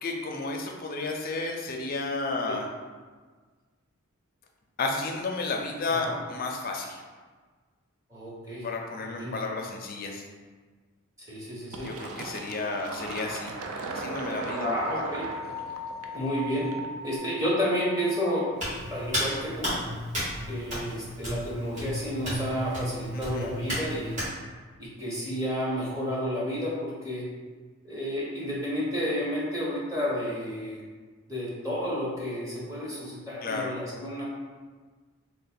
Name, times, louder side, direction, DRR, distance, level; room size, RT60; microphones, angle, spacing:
voice 1, 0.0-2.7 4.8-7.0 8.6-10.2 11.8-13.5 13.9-15.0 23.1-23.5 33.4-33.7, left 3 dB, 40° left, 1 dB, 0.4 m, -32 dB
voice 2, 8.1-8.6 9.0-9.3 11.3-11.9 14.6-15.3 16.1-16.7 17.0-18.6 18.9-19.7 20.5-24.1 24.8-27.2 27.8-30.8 31.3-34.2, equal, 15° right, -7 dB, 0.8 m, -31 dB
Fill (with liquid), 11.7-17.1, right 3 dB, 80° right, 0.4 m, -37 dB
sound 1, 14.3-19.4, left 1 dB, 50° right, 1.2 m, -41 dB
Hands, 18.6-24.3, equal, 35° right, 1.4 m, -33 dB
3.0 x 2.1 x 4.2 m, 1.4 s
head